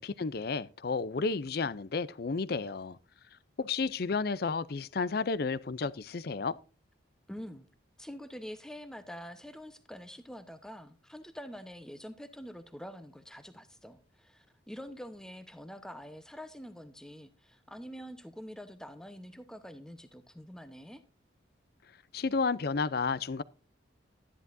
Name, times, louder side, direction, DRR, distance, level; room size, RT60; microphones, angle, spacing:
voice 1, 0.0-3.0 3.6-6.6 22.1-23.4, left 4 dB, 50° left, 0.5 m, -32 dB
voice 2, 7.3-7.7 8.0-21.0, equal, 5° left, 0.9 m, -46 dB
12.5 x 11.0 x 2.6 m
head